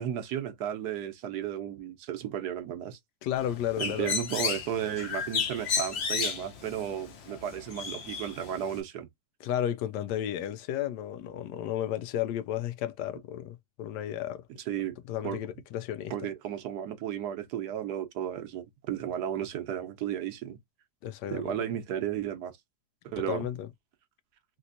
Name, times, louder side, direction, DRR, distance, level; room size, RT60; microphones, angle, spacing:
voice 1, 0.0-3.0 3.8-9.1 14.7-15.0 15.2-15.4 16.1-20.6 21.3-22.5 23.0-23.5, right 10 dB, 75° right, 1.2 m, -34 dB
voice 2, 3.2-4.1 9.4-14.4 15.1-16.1 21.0-21.6 23.2-23.7, left 11 dB, 85° left, 1.2 m, -33 dB
Bird, 3.4-8.8, left 6 dB, 55° left, 0.8 m, -33 dB
3.4 x 2.9 x 2.5 m
omnidirectional pair, 1.8 m